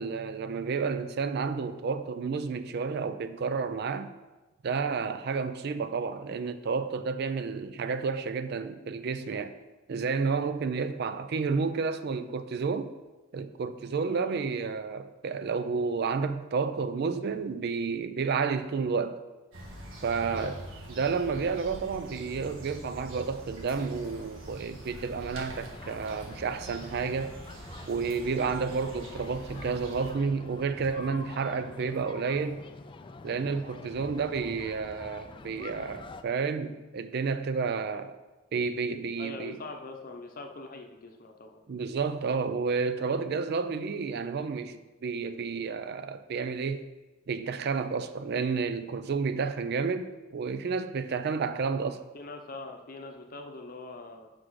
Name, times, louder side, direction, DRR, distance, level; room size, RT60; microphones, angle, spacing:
voice 1, 0.0-4.1 4.6-9.5 9.9-12.9 13.3-19.2 20.0-20.6 20.9-27.3 27.9-32.6 33.2-38.2 38.5-39.6 41.7-46.9 47.3-52.0, right 5 dB, 55° right, 0.4 m, -31 dB
voice 2, 14.1-14.5 20.3-20.6 37.9-38.0 39.2-41.6 52.1-54.3, left 3 dB, 45° left, 0.8 m, -43 dB
sound 1, 19.5-30.1, right 1 dB, 85° right, 1.5 m, -44 dB
sound 2, 25.3-36.2, left 3 dB, 25° left, 0.3 m, -46 dB
6.1 x 6.1 x 4.7 m
head